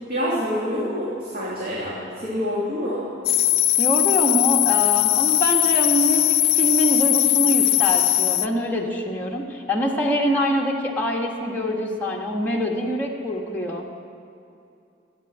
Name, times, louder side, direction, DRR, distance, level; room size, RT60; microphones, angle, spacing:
voice 1, 0.1-3.0, equal, 50° right, -9 dB, 3.2 m, -27 dB
sound 1, 3.3-8.5, left 15 dB, 55° left, 0.4 m, -19 dB
voice 2, 3.8-13.8, equal, 10° left, -3 dB, 1.5 m, -24 dB
14.5 x 9.1 x 9.1 m, 2.6 s
head